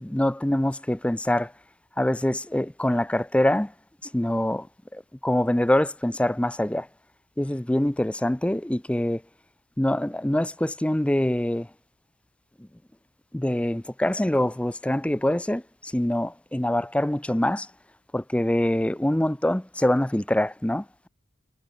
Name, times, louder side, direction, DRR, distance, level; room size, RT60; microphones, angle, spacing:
voice 1, 0.0-1.5 2.0-3.7 4.1-4.7 4.9-6.9 7.4-9.2 9.8-11.7 13.3-15.6 15.9-17.7 18.1-20.8, left 1 dB, 5° left, 0.5 m, -24 dB
head